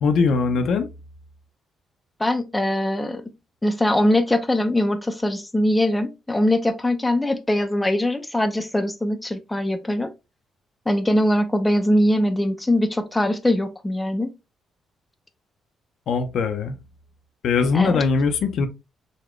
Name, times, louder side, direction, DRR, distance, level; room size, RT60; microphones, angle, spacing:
voice 1, 0.0-0.9 16.1-16.8 17.4-18.7, left 5 dB, 70° left, 0.6 m, -21 dB
voice 2, 2.2-3.2 3.6-10.1 10.9-14.3 17.7-18.0, left 1 dB, 10° left, 0.5 m, -22 dB
4.0 x 2.2 x 3.1 m
cardioid pair, 90°, 0 cm